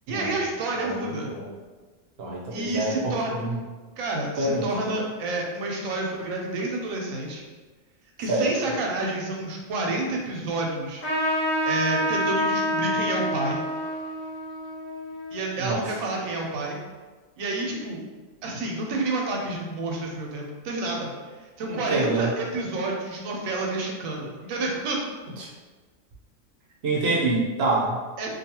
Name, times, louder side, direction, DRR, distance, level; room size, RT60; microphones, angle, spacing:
voice 1, 0.1-1.3 2.5-3.3 4.0-7.4 8.2-11.0 11.6-13.6 15.3-16.8 17.4-18.0 18.4-21.1 21.6-25.0 26.9-27.1 28.2-28.3, right 2 dB, 85° right, 0 dB, 1.0 m, -29 dB
voice 2, 0.8-1.5 2.2-3.6 4.4-4.9 8.3-8.8 15.6-15.8 21.7-22.3 25.4-25.5 26.8-28.0, right 2 dB, 60° right, -3 dB, 0.8 m, -27 dB
Trumpet, 11.0-16.0, equal, 80° left, 1.2 m, -28 dB
2.6 x 2.3 x 2.8 m, 1.3 s
omnidirectional pair, 1.4 m